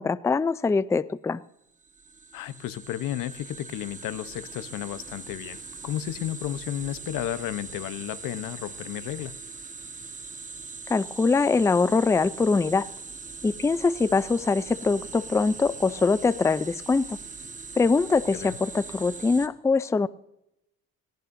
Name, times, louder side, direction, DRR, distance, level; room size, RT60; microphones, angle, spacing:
voice 1, 0.0-1.4 10.9-12.9 13.4-17.2 17.8-20.1, left 4 dB, 10° left, 17 dB, 0.4 m, -23 dB
sound 1, 1.7-19.5, right 4 dB, 25° right, 1.2 m, -41 dB
voice 2, 2.3-9.3 18.3-18.6, left 13 dB, 85° left, 14 dB, 0.9 m, -33 dB
19.5 x 17.5 x 2.6 m, 0.83 s
cardioid pair, 105°, 32 cm